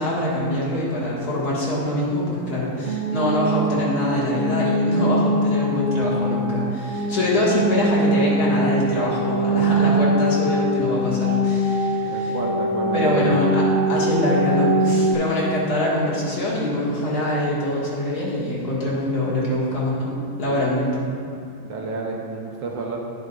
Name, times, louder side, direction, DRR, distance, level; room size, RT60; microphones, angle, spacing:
voice 1, 0.0-12.4 12.9-20.1 20.4-21.0, left 1 dB, 45° left, -7 dB, 2.4 m, -24 dB
sound 1, 2.8-15.1, right 1 dB, 45° right, 1.8 m, -22 dB
voice 2, 12.0-13.3 21.7-23.0, right 3 dB, 65° right, 0 dB, 1.4 m, -30 dB
10.5 x 10.5 x 2.5 m, 2.5 s
omnidirectional pair, 2.4 m